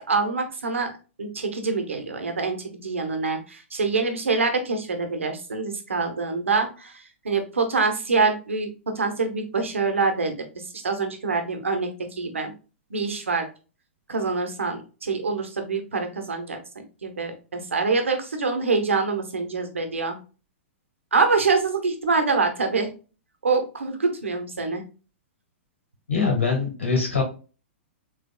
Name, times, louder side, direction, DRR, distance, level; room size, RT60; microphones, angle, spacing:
voice 1, 0.1-0.9 1.2-8.7 8.9-10.4 10.8-12.5 12.9-13.5 14.1-16.6 17.0-20.2 21.1-22.9 23.4-24.8, right 4 dB, 80° right, 5 dB, 1.2 m, -25 dB
voice 2, 26.1-27.2, left 5 dB, 85° left, 0 dB, 2.2 m, -23 dB
5.0 x 3.5 x 2.2 m, 0.34 s
hypercardioid pair, 110°, 7 cm